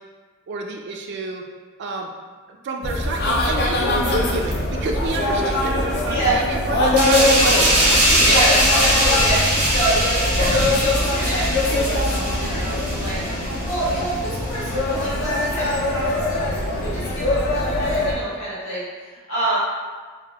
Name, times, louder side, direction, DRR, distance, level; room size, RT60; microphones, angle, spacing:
voice 1, 0.5-1.4 1.8-2.1 2.5-8.4, right 3 dB, 55° right, 2 dB, 0.3 m, -29 dB
sound 1, 2.8-18.1, left 1 dB, 50° left, 0.4 m, -22 dB
sound 2, 7.0-14.1 14.5-14.7, equal, 85° right, 0.7 m, -21 dB
voice 2, 8.2-19.6, right 1 dB, 75° left, -9 dB, 1.3 m, -27 dB
3.4 x 2.1 x 2.2 m, 1.5 s
head